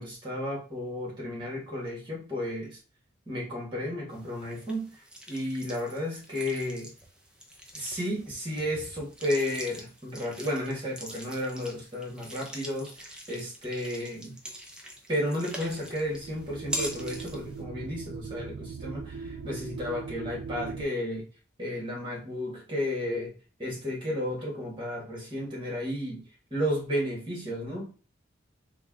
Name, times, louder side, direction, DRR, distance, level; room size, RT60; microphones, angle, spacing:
voice 1, 0.0-2.8 3.3-4.9 5.3-6.9 7.7-14.4 15.1-21.3 21.6-23.3 23.6-26.2 26.5-27.9, left 1 dB, 25° right, -3 dB, 1.4 m, -33 dB
sound 1, 4.1-17.6, right 1 dB, 5° right, 0.4 m, -43 dB
sound 2, 15.5-20.9, right 5 dB, 80° right, 0.3 m, -40 dB
3.2 x 2.2 x 3.6 m, 0.36 s
head